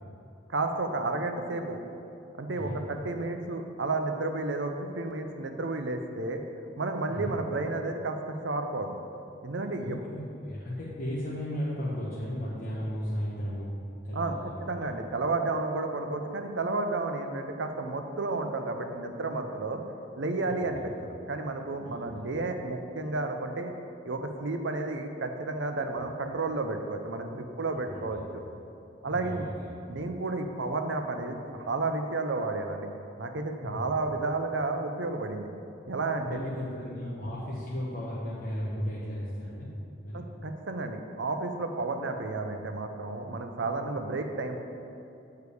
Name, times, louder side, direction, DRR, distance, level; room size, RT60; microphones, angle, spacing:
voice 1, 0.5-1.8 2.3-6.4 6.8-8.2 8.4-8.9 9.4-10.0 14.1-19.8 20.2-23.7 24.0-28.4 29.0-29.5 29.9-32.9 33.2-35.5 35.9-36.5 40.1-44.6, right 3 dB, 70° right, 5 dB, 0.6 m, -32 dB
voice 2, 7.1-7.4 9.8-14.8 20.5-20.8 21.8-22.2 27.8-28.2 29.0-29.7 33.6-33.8 36.2-39.7 40.0-40.2, equal, 45° left, -8 dB, 1.0 m, -35 dB
6.7 x 4.7 x 6.8 m, 2.7 s
head